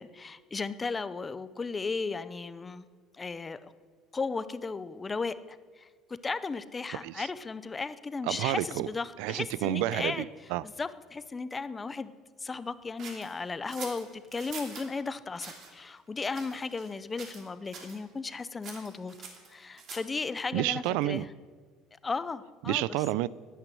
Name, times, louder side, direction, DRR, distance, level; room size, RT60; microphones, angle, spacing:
voice 1, 0.0-2.9 3.1-3.7 4.1-5.9 6.2-10.3 10.6-12.1 12.4-19.1 19.5-21.3 22.0-23.0, left 4 dB, 15° left, 14 dB, 0.5 m, -35 dB
voice 2, 8.2-8.9 9.2-10.6 20.5-21.3 22.7-23.3, right 16 dB, 80° right, 20 dB, 0.4 m, -30 dB
sound 1, 13.0-14.9 15.4-15.7 16.3-16.9 17.2-17.5 17.7-18.0 18.6-20.2, right 5 dB, 40° right, 2.7 m, -44 dB
12.5 x 9.3 x 9.9 m, 1.5 s
cardioid pair, 160°, 0 cm